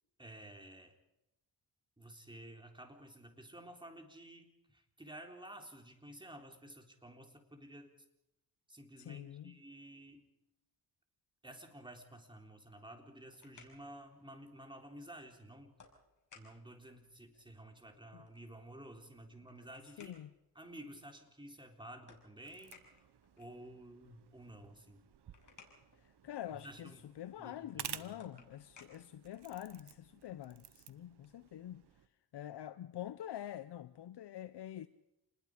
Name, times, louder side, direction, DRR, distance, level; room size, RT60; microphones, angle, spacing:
voice 1, 0.2-1.0 2.0-7.9 8.7-10.2 11.4-15.7 16.3-20.2 20.6-23.1 23.4-25.0 26.5-28.5, right 1 dB, 10° right, 3.8 m, -53 dB
voice 2, 9.0-9.6 18.1-18.2 20.0-20.3 26.0-31.8 32.3-34.9, left 11 dB, 75° left, 0.8 m, -46 dB
sound 1, 13.1-30.0, left 4 dB, 45° left, 5.9 m, -65 dB
sound 2, 22.5-32.1, right 10 dB, 70° right, 1.1 m, -53 dB
28.5 x 20.5 x 5.0 m
cardioid pair, 75°, 41 cm